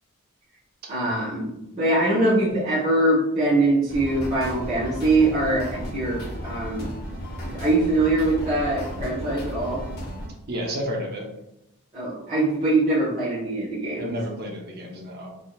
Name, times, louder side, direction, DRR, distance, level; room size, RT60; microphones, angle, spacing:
voice 1, 0.9-6.9 7.5-9.8 11.9-14.1, right 2 dB, 30° right, -12 dB, 1.1 m, -23 dB
sound 1, 3.9-10.3, equal, 45° left, 0.7 m, -34 dB
voice 2, 10.5-11.3 14.0-15.3, equal, 45° right, 0 dB, 0.7 m, -31 dB
3.4 x 2.8 x 2.3 m, 0.86 s
head